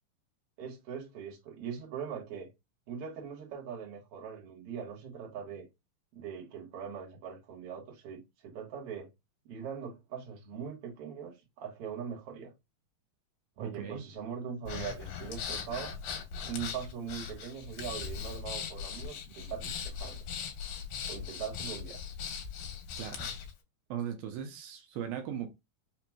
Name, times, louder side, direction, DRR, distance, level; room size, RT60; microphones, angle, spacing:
voice 1, 0.6-2.5 2.9-5.7 6.1-9.1 9.4-12.5 13.6-15.9 16.4-20.2 21.0-22.0, right 7 dB, 60° right, 1.7 m, -41 dB
voice 2, 13.6-14.0 23.0-23.3 23.9-25.5, right 9 dB, 80° right, 2.4 m, -38 dB
Breathing, 14.7-23.5, left 7 dB, 75° left, 2.4 m, -39 dB
5.7 x 2.9 x 2.2 m
omnidirectional pair, 4.3 m